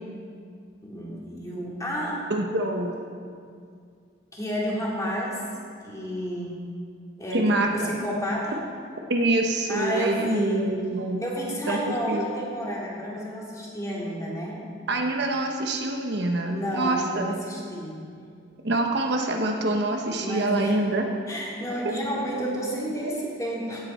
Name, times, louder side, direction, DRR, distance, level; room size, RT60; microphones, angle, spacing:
voice 1, 0.8-2.2 4.3-5.4 5.8-6.5 7.2-8.6 9.7-10.7 11.2-14.6 16.4-18.0 20.1-20.7 21.3-23.9, equal, 15° left, -5 dB, 2.4 m, -30 dB
voice 2, 2.3-3.0 7.3-8.1 9.1-11.2 11.7-12.2 14.9-17.3 18.6-21.0, right 2 dB, 60° right, 2 dB, 1.0 m, -25 dB
16.5 x 8.6 x 4.3 m, 2.2 s
head